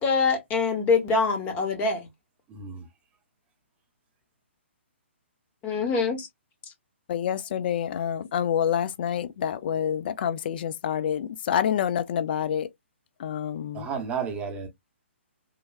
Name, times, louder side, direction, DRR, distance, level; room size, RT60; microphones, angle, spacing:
voice 1, 0.0-2.0 5.6-6.3, left 4 dB, 20° left, 0.9 m, -24 dB
voice 2, 2.5-2.9 13.7-14.7, right 6 dB, 20° right, 0.8 m, -32 dB
voice 3, 7.1-12.7 13.2-13.9, left 9 dB, 50° left, 0.4 m, -27 dB
3.2 x 2.2 x 2.3 m
hypercardioid pair, 135°, 7 cm